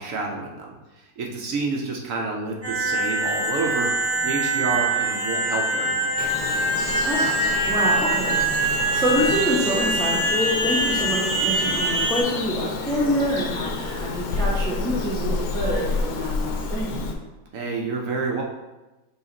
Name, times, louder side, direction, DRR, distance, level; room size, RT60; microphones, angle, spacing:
voice 1, 0.0-6.3 17.5-18.4, right 3 dB, 65° right, 0 dB, 0.9 m, -29 dB
sound 1, 2.6-12.2, right 2 dB, 20° right, 1.7 m, -24 dB
Bird vocalization bird call bird song, 6.2-17.1, left 3 dB, 80° left, 1.1 m, -30 dB
voice 2, 7.0-17.1, equal, 5° left, -4 dB, 0.4 m, -26 dB
5.5 x 2.4 x 3.9 m, 1.1 s
omnidirectional pair, 1.7 m